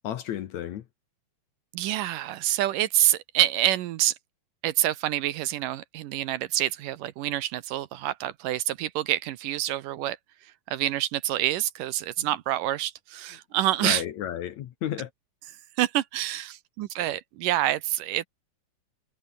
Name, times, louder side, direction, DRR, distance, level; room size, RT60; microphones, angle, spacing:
voice 1, 0.0-0.8 12.2-12.3 13.8-15.1, left 10 dB, 65° left, 2.1 m, -32 dB
voice 2, 1.7-4.2 4.6-10.2 10.4-14.0 15.8-18.3, right 14 dB, 75° right, 2.4 m, -27 dB
omnidirectional pair, 4.1 m